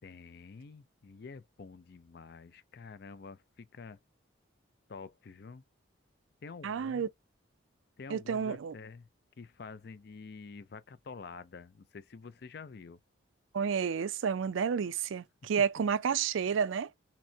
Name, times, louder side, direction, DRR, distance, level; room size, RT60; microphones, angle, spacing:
voice 1, 0.0-4.0 4.9-5.6 6.4-7.1 8.0-9.1 9.4-13.0, left 4 dB, 55° left, 0.4 m, -48 dB
voice 2, 6.6-7.1 8.1-8.7 13.5-16.9, right 6 dB, 80° right, 0.4 m, -30 dB
5.8 x 2.1 x 2.7 m
head